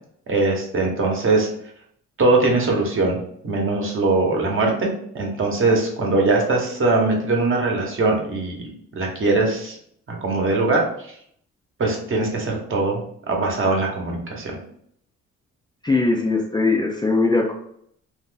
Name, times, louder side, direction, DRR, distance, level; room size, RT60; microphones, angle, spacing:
voice 1, 0.3-1.5 2.2-3.2 3.4-9.8 10.1-10.8 11.8-14.6, right 3 dB, 45° right, 0 dB, 1.0 m, -21 dB
voice 2, 15.8-17.5, left 3 dB, 15° left, -1 dB, 0.5 m, -20 dB
2.6 x 2.5 x 3.8 m, 0.67 s
cardioid pair, 90°, 30 cm